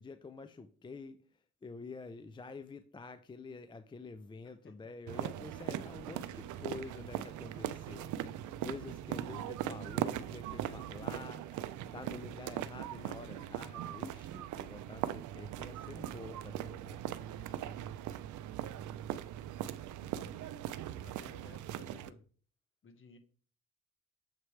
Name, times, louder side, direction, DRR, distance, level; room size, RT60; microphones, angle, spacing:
voice 1, 0.0-17.0, left 4 dB, 15° left, 10 dB, 0.4 m, -48 dB
sound 1, 5.1-22.1, right 11 dB, 75° right, 0.5 m, -40 dB
voice 2, 10.6-11.1 20.0-20.3 21.0-22.2 22.8-23.2, left 4 dB, 40° left, 7 dB, 1.3 m, -57 dB
7.4 x 4.8 x 3.2 m, 0.42 s
cardioid pair, 90°, 30 cm